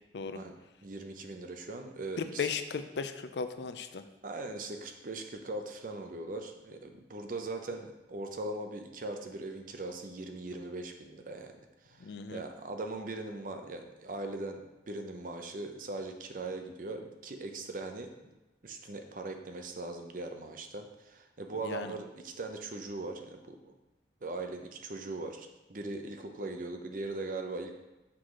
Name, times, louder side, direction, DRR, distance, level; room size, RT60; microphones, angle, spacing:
voice 1, 0.8-2.5 4.2-18.3 18.6-23.7 24.2-27.7, right 2 dB, 50° right, 5 dB, 0.6 m, -40 dB
voice 2, 2.2-4.0 12.0-12.4 21.6-21.9, left 5 dB, 70° left, 10 dB, 0.4 m, -36 dB
6.0 x 4.8 x 3.7 m, 1.0 s
head